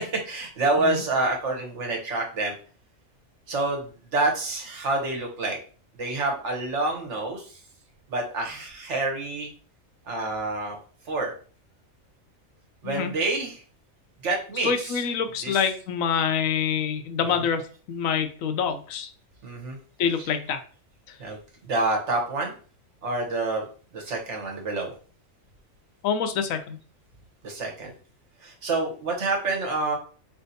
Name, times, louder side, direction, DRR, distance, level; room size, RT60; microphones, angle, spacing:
voice 1, 0.0-2.5 3.5-5.6 6.0-7.6 8.1-9.5 10.0-10.8 11.1-11.3 12.8-13.6 14.2-15.0 15.4-15.6 19.4-19.8 21.2-21.4 21.7-22.5 23.0-23.6 23.9-24.9 27.4-27.9 28.4-29.9, right 2 dB, 60° right, 1 dB, 1.2 m, -27 dB
voice 2, 14.6-19.1 20.0-20.6 21.1-21.2 26.0-26.8, left 7 dB, 80° left, 8 dB, 1.0 m, -26 dB
4.4 x 3.3 x 2.7 m, 0.41 s
omnidirectional pair, 1.4 m